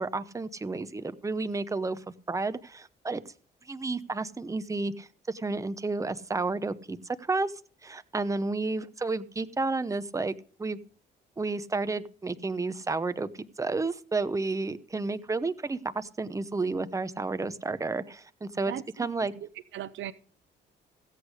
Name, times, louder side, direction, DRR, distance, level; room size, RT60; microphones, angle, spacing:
voice 1, 0.0-2.0 2.3-3.2 3.7-7.5 7.8-10.3 10.6-10.8 11.4-13.3 13.6-18.7 19.0-19.3, right 3 dB, 15° right, 0.8 m, -31 dB
voice 2, 18.7-20.1, right 11 dB, 75° right, 0.7 m, -39 dB
16.0 x 8.2 x 4.9 m
cardioid pair, 90°, 20 cm